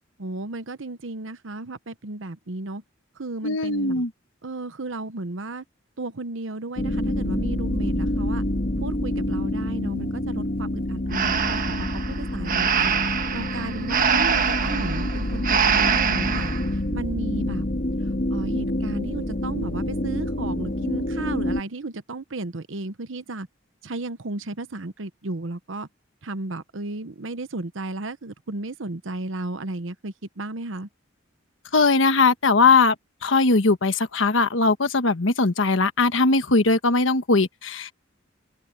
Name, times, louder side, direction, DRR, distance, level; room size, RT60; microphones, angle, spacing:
voice 1, 0.2-2.8 3.1-4.0 4.4-5.6 6.0-8.4 8.8-16.5 16.7-17.7 18.3-23.5 23.8-25.9 26.2-30.9, right 2 dB, 85° right, 1.0 m, -34 dB
voice 2, 3.4-4.1 31.7-32.9 33.2-37.9, left 3 dB, 85° left, 1.2 m, -20 dB
sound 1, 6.8-21.6, left 1 dB, 50° left, 2.1 m, -27 dB
Breathing, 11.1-16.6, right 7 dB, 45° right, 1.3 m, -24 dB
head